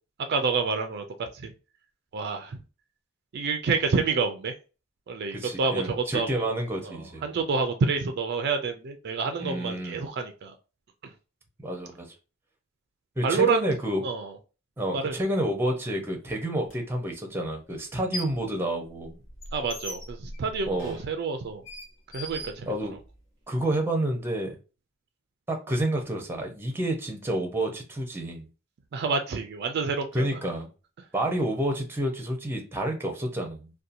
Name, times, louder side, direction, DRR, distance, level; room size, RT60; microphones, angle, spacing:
voice 1, 0.3-1.5 2.1-2.6 3.3-4.5 5.1-6.5 6.8-10.5 11.0-11.1 13.2-13.6 14.0-14.4 14.9-15.1 19.5-21.6 22.1-22.7 28.9-30.4, right 4 dB, 55° right, 6 dB, 0.4 m, -28 dB
voice 2, 5.3-7.2 9.4-10.0 11.6-12.1 13.2-14.0 14.8-19.2 20.7-20.9 22.7-22.9 23.5-24.6 25.5-28.5 30.1-30.7 31.1-33.7, right 1 dB, 10° right, 3 dB, 0.6 m, -29 dB
sound 1, 16.7-16.8 17.8-18.5 18.8-23.2, left 1 dB, 65° left, 1.0 m, -40 dB
2.7 x 2.2 x 2.5 m, 0.32 s
head